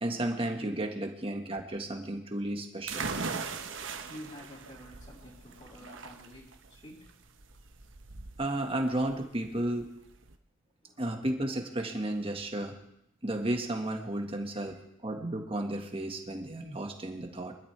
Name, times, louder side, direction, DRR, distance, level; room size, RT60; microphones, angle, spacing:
voice 1, 0.0-3.1 8.4-9.9 11.0-12.8 13.2-17.6, right 1 dB, 30° right, 3 dB, 1.7 m, -33 dB
sound 1, 2.9-10.3, right 4 dB, 75° right, 1.1 m, -40 dB
voice 2, 4.0-7.1 10.8-11.0 14.7-14.8, equal, 30° left, -7 dB, 4.1 m, -49 dB
24.0 x 12.5 x 3.4 m, 0.78 s
head